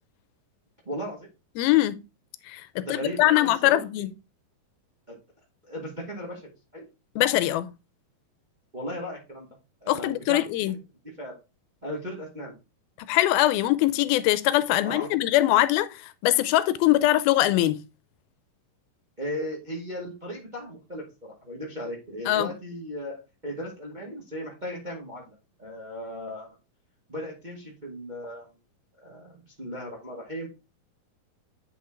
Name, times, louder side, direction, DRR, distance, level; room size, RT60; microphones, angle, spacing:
voice 1, 0.8-1.3 2.8-3.8 5.1-5.2 5.6-6.8 8.7-9.5 9.8-10.8 11.2-11.4 11.8-12.5 14.8-15.1 19.2-26.5 27.1-28.5 29.0-30.5, equal, 25° right, 1.0 m, -36 dB
voice 2, 1.6-1.9 2.5-2.6 2.9-4.1 7.2-7.7 9.9-10.7 13.1-17.8 22.3-22.5, left 15 dB, 90° left, 2.5 m, -22 dB
8.3 x 4.3 x 3.7 m
omnidirectional pair, 4.2 m